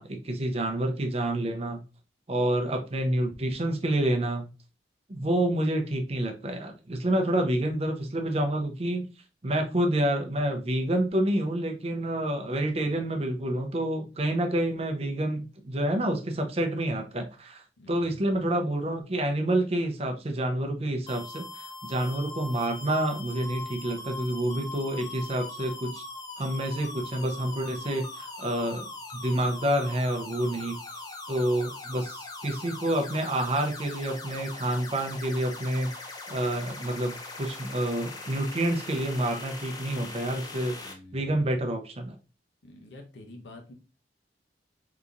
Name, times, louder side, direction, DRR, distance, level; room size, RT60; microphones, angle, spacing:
voice 1, 0.0-1.8 2.3-4.5 5.1-9.1 9.4-26.0 26.4-28.9 29.1-40.7 41.1-42.1, right 1 dB, 35° right, 4 dB, 0.6 m, -28 dB
voice 2, 17.8-18.4 40.7-41.4 42.6-43.7, left 1 dB, 85° left, 2 dB, 0.8 m, -48 dB
sound 1, 21.1-40.9, left 2 dB, 20° left, 0.5 m, -41 dB
3.8 x 2.9 x 2.4 m, 0.30 s
head